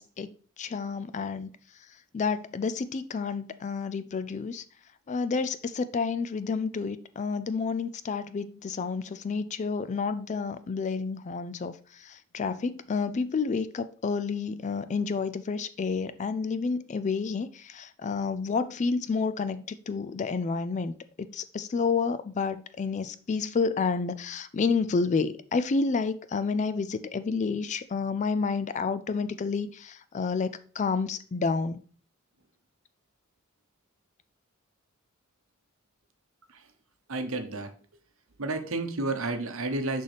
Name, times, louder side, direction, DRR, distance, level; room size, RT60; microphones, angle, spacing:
voice 1, 0.0-1.5 2.1-4.6 5.1-11.7 12.0-31.8, left 4 dB, 35° left, 0.3 m, -30 dB
voice 2, 37.1-37.7 38.4-40.0, right 2 dB, 70° right, 0.9 m, -31 dB
6.4 x 5.5 x 3.3 m
head